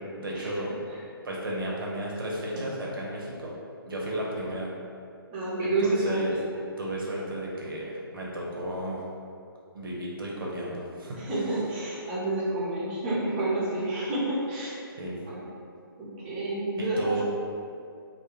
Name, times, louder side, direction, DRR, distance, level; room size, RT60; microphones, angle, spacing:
voice 1, 0.2-0.7 1.2-3.6 3.9-4.7 5.6-6.4 6.8-9.0 9.7-11.2 15.0-15.2 16.8-17.2, right 1 dB, 65° right, -3 dB, 0.7 m, -33 dB
voice 2, 5.3-6.2 11.2-14.7 15.3-15.4 16.0-17.2, right 2 dB, 25° right, -8 dB, 0.6 m, -29 dB
2.2 x 2.1 x 3.0 m, 2.4 s
figure-of-eight pair, 140°, 13 cm